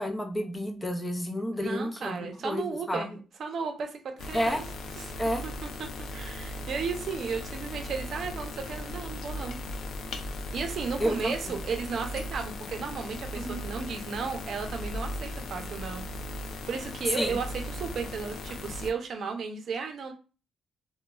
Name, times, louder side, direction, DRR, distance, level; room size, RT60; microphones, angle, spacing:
voice 1, 0.0-3.2 4.3-4.6 5.2-5.4 11.0-11.3 13.4-13.6 17.2-17.4, equal, 15° left, 4 dB, 0.5 m, -30 dB
voice 2, 1.5-3.1 3.4-4.6 5.0-5.1 5.4-9.6 10.5-16.1 16.6-20.1, right 5 dB, 60° right, 4 dB, 0.6 m, -34 dB
sound 1, 4.2-18.9, left 1 dB, 65° left, 0.4 m, -38 dB
2.9 x 2.2 x 2.3 m, 0.34 s
cardioid pair, 90°, 0 cm